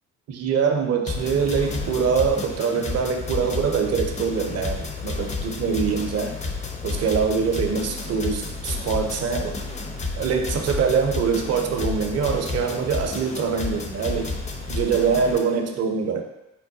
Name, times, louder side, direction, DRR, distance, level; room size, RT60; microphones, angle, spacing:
voice 1, 0.3-6.3 6.8-9.5 10.2-14.3 14.7-16.2, right 6 dB, 40° right, 4 dB, 0.5 m, -24 dB
sound 1, 1.1-15.4, left 3 dB, 20° left, 0.4 m, -31 dB
3.7 x 2.1 x 2.6 m, 0.96 s
hypercardioid pair, 40°, 39 cm